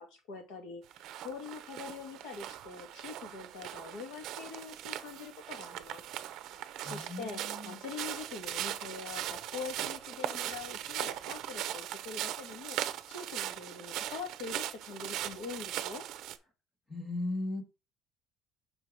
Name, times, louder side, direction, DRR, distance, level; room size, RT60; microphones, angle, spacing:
voice 1, 0.0-6.2 6.5-12.8 13.1-16.0, left 5 dB, 80° left, 2.1 m, -44 dB
sound 1, 0.9-16.4, right 12 dB, 55° right, 0.7 m, -39 dB
voice 2, 6.8-7.8 16.9-17.6, left 2 dB, 10° left, 1.2 m, -37 dB
6.2 x 4.5 x 5.0 m
cardioid pair, 175°, 0 cm